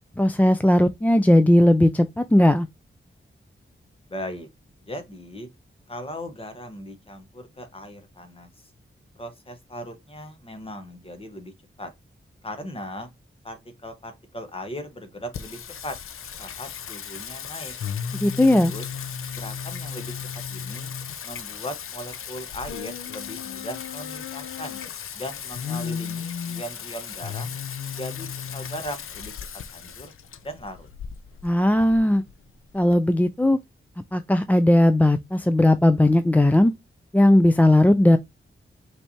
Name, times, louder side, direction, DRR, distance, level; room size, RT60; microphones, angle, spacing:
voice 1, 0.2-2.7 18.1-18.7 31.4-32.2 32.7-33.6 34.1-36.7 37.1-38.2, left 1 dB, 10° left, 0.3 m, -17 dB
voice 2, 4.1-4.5 4.8-5.5 5.9-8.7 9.2-11.5 11.8-11.9 12.4-13.1 13.4-16.0 16.4-17.7 18.4-18.8 19.3-20.1 20.5-20.9 21.2-24.8 25.1-27.5 28.0-29.3 29.7-30.1 30.4-30.9, equal, 25° left, 1.2 m, -38 dB
Singing, 15.3-32.9, left 7 dB, 90° left, 0.5 m, -35 dB
5.5 x 3.4 x 2.7 m
wide cardioid pair, 120°, 21 cm